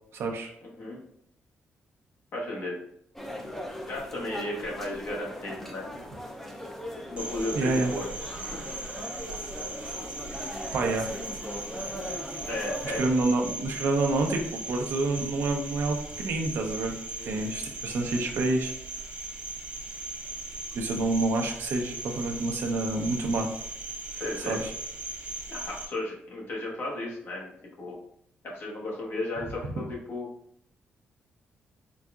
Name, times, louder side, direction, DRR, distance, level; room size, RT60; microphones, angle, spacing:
voice 1, 0.1-0.5 7.5-7.9 10.7-11.1 12.8-17.0 17.2-18.7 20.7-23.5 24.5-24.7, right 2 dB, 75° right, 2 dB, 0.7 m, -28 dB
voice 2, 2.3-2.8 3.9-5.8 7.1-8.0 8.5-8.7 12.4-13.0 17.2-17.5 24.1-24.6 25.5-27.5 27.8-28.0 28.4-30.3, left 1 dB, 65° left, -3 dB, 1.2 m, -34 dB
sound 1, 3.1-13.0, left 1 dB, 5° left, 0.5 m, -39 dB
Cricket, 7.2-25.9, right 2 dB, 30° right, 0.7 m, -39 dB
4.0 x 3.5 x 2.4 m, 0.72 s
cardioid pair, 115°, 4 cm